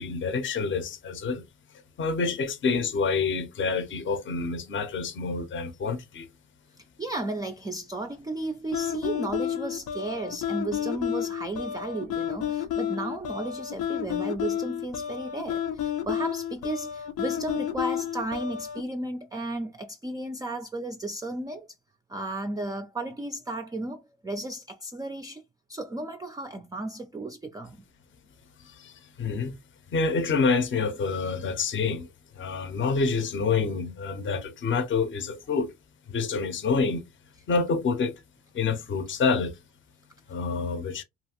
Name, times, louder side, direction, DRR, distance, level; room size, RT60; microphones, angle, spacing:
voice 1, 0.0-1.4 2.0-6.3 28.6-29.6 29.9-32.1 32.4-35.7 36.1-37.0 37.5-38.2 38.5-39.6 40.3-41.0, left 4 dB, 40° left, 0.6 m, -27 dB
voice 2, 7.0-21.7 22.1-25.4 25.7-27.8, right 2 dB, 15° right, 0.3 m, -34 dB
sound 1, 8.7-18.8, left 10 dB, 80° left, 0.6 m, -31 dB
2.7 x 2.4 x 2.9 m
cardioid pair, 90°, 30 cm